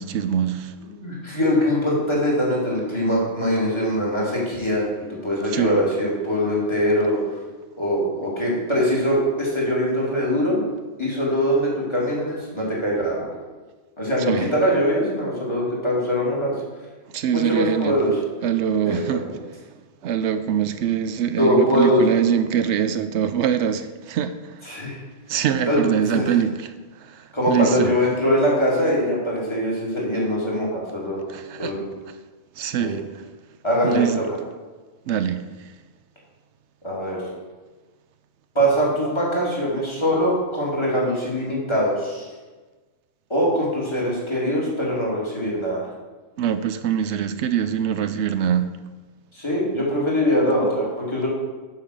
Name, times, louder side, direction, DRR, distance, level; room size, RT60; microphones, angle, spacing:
voice 1, 0.0-0.7 5.5-5.8 14.3-14.5 17.1-18.0 18.4-19.4 20.0-24.6 25.3-27.9 31.3-31.7 32.6-33.2 33.8-34.2 35.1-35.4 46.4-48.7, right 9 dB, 80° right, 10 dB, 0.9 m, -23 dB
voice 2, 0.8-4.8 5.2-7.2 7.7-10.6 11.0-13.3 14.0-16.5 17.3-18.2 18.8-19.4 21.4-22.2 24.6-25.0 25.7-26.3 27.3-31.3 31.6-31.9 32.8-33.0 33.6-34.2 36.8-37.3 38.5-42.3 43.3-45.9 49.3-51.3, equal, 25° left, -4 dB, 2.8 m, -22 dB
7.4 x 5.7 x 6.5 m, 1.3 s
omnidirectional pair, 1.2 m